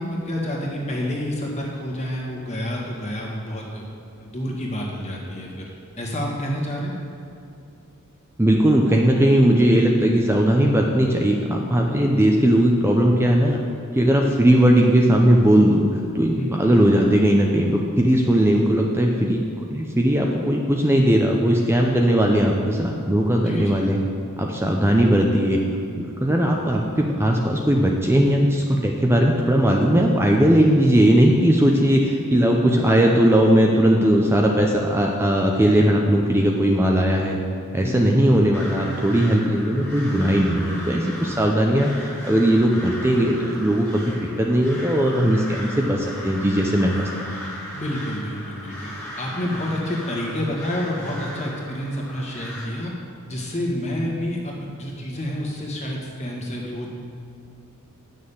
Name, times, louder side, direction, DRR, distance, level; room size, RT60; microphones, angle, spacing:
voice 1, 0.0-3.8 4.2-5.7 6.0-6.9 16.4-16.7 23.4-23.8 37.8-38.2 47.7-52.9 53.3-56.9, equal, 30° left, -2 dB, 1.8 m, -29 dB
voice 2, 8.4-13.6 13.9-15.9 16.1-24.0 24.4-25.6 26.0-37.4 37.7-47.1, right 1 dB, 10° right, 0 dB, 0.6 m, -18 dB
Crow, 38.5-52.7, left 1 dB, 10° left, 1.8 m, -37 dB
9.5 x 6.5 x 7.0 m, 2.6 s
head